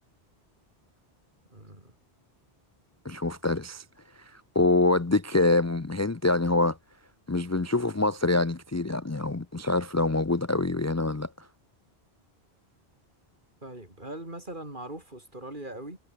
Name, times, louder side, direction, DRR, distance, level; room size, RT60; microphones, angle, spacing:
voice 1, 1.5-1.9 13.6-16.0, right 1 dB, 50° right, 5.3 m, -40 dB
voice 2, 3.0-3.8 4.2-6.8 7.3-11.5, left 2 dB, 20° left, 0.6 m, -25 dB
omnidirectional pair, 1.1 m